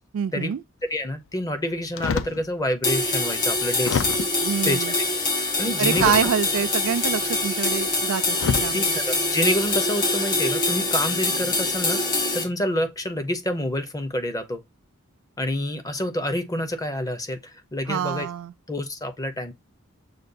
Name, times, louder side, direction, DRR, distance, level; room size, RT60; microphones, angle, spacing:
voice 1, 0.1-0.6 4.4-4.9 5.8-9.0 17.9-18.5, right 8 dB, 75° right, 0.4 m, -26 dB
voice 2, 0.9-4.0 4.6-4.8 5.6-6.2 8.7-12.0 12.3-14.6 15.4-17.4 17.7-18.3 18.7-19.5, left 1 dB, 15° left, 0.6 m, -27 dB
sound 1, 2.0-2.4 3.1-3.2 3.8-4.5 5.9-6.6 7.7-7.9 8.3-8.8 9.5-9.8, left 5 dB, 65° left, 0.4 m, -27 dB
sound 2, 2.8-12.4, left 2 dB, 40° left, 1.5 m, -24 dB
6.5 x 2.2 x 2.5 m
head